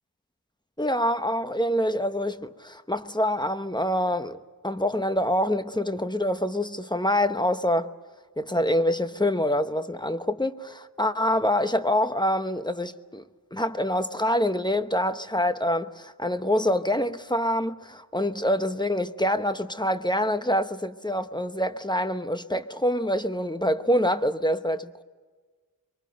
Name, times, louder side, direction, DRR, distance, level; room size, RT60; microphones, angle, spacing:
voice 1, 0.8-4.4 4.6-7.9 8.4-13.2 13.5-25.0, left 1 dB, 10° left, 1.0 m, -26 dB
25.5 x 23.0 x 7.8 m
wide cardioid pair, 50°, 38 cm